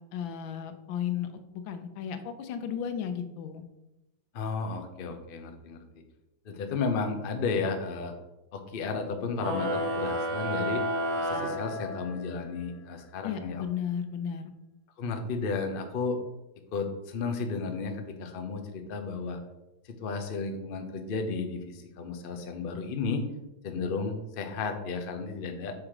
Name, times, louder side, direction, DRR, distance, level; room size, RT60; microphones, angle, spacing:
voice 1, 0.1-1.3 1.7-3.6 13.2-14.4, left 8 dB, 90° left, 8 dB, 1.4 m, -34 dB
voice 2, 4.3-5.8 6.4-8.1 8.5-10.8 11.2-13.6 15.0-16.2 16.7-19.4 19.8-23.2 23.6-25.7, left 4 dB, 70° left, 5 dB, 0.5 m, -33 dB
sound 1, 9.4-12.4, equal, 90° right, 2.0 m, -31 dB
6.2 x 3.6 x 4.8 m, 0.96 s
omnidirectional pair, 2.1 m